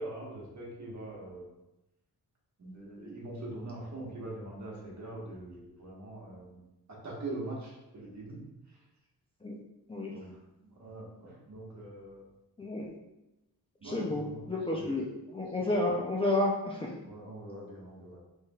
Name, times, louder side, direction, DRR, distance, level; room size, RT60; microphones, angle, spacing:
voice 1, 0.0-1.5 2.6-6.6 6.9-8.8 10.1-10.4 10.7-12.3 13.8-14.5 14.7-14.9 17.0-18.2, right 2 dB, 45° right, -4 dB, 1.3 m, -43 dB
voice 2, 12.6-12.9 13.8-17.0, left 2 dB, 15° left, -3 dB, 0.5 m, -31 dB
4.7 x 4.5 x 2.4 m, 0.94 s
wide cardioid pair, 150°, 40 cm